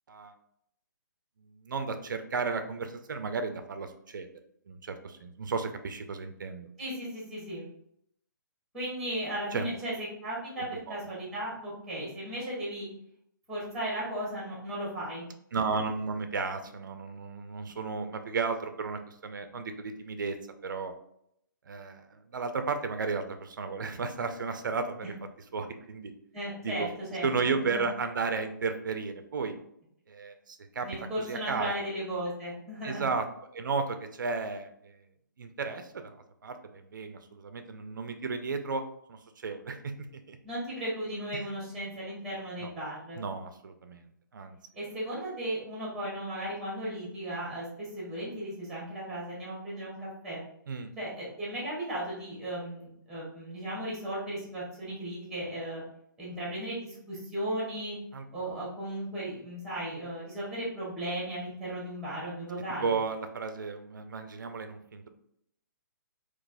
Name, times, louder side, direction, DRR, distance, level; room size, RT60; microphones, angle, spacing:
voice 1, 1.4-4.3 4.7-6.7 9.5-9.7 10.9-11.0 15.5-20.4 20.6-20.9 21.7-25.1 25.5-26.1 26.6-26.9 27.2-29.5 30.1-30.9 31.2-31.7 32.8-33.2 33.5-35.0 35.4-36.2 36.4-38.8 39.1-40.4 41.3-41.5 42.6-42.7 43.2-44.6 50.7-50.9 58.1-58.3 62.8-65.1, right 4 dB, 65° right, 8 dB, 0.4 m, -34 dB
voice 2, 6.8-7.6 8.7-12.9 13.5-15.2 25.0-25.1 26.3-27.3 27.6-27.8 30.8-33.1 40.4-43.2 44.7-50.4 51.0-55.8 56.2-58.0 58.3-63.0, right 1 dB, ahead, -6 dB, 1.3 m, -36 dB
3.9 x 2.4 x 2.5 m, 0.73 s
figure-of-eight pair, 130°, 11 cm